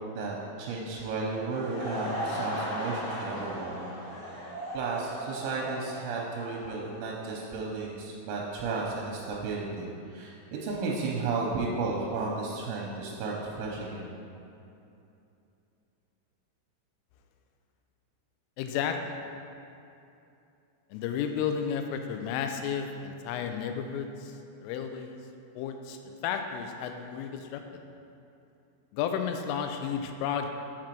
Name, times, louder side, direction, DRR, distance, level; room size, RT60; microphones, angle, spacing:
voice 1, 0.1-3.9 4.7-14.1, right 3 dB, 85° right, -2 dB, 2.9 m, -33 dB
Laughter / Crowd, 1.4-7.6, equal, 55° left, 2.6 m, -37 dB
voice 2, 18.6-19.2 20.9-25.2 25.6-27.9 28.9-30.5, left 7 dB, 85° left, 6 dB, 3.1 m, -33 dB
7.4 x 6.0 x 4.5 m, 2.7 s
omnidirectional pair, 5.8 m